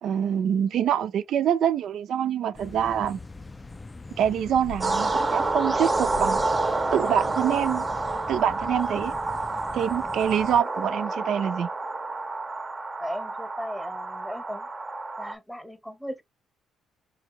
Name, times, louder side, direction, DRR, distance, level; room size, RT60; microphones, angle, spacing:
voice 1, 0.0-3.2 4.2-6.4 6.9-7.9 8.3-9.1 9.7-11.7, right 9 dB, 70° right, 0.5 m, -25 dB
sound 1, 2.5-10.6, left 3 dB, 20° left, 0.4 m, -42 dB
sound 2, 4.0-4.2 4.5-5.6 6.0-6.6 7.0-8.0 8.5-8.6 8.8-9.9, left 2 dB, 90° left, 0.6 m, -44 dB
sound 3, 4.8-15.3, right 3 dB, 25° right, 0.6 m, -29 dB
voice 2, 13.0-14.7 15.2-16.2, equal, ahead, 0.9 m, -36 dB
4.6 x 2.3 x 3.0 m
cardioid pair, 90°, 0 cm